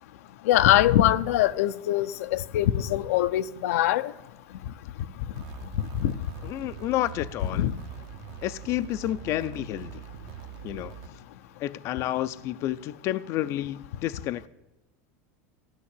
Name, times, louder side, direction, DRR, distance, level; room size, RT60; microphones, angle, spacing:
voice 1, 0.5-4.1 6.0-6.1 7.5-7.7, left 13 dB, 80° left, 0.7 m, -22 dB
sound 1, 5.3-11.1, right 12 dB, 50° right, 0.8 m, -43 dB
voice 2, 6.4-7.7 8.4-10.0 10.6-11.0 11.6-14.5, left 14 dB, 40° left, 0.5 m, -30 dB
15.0 x 10.0 x 8.3 m
supercardioid pair, 160°, 8 cm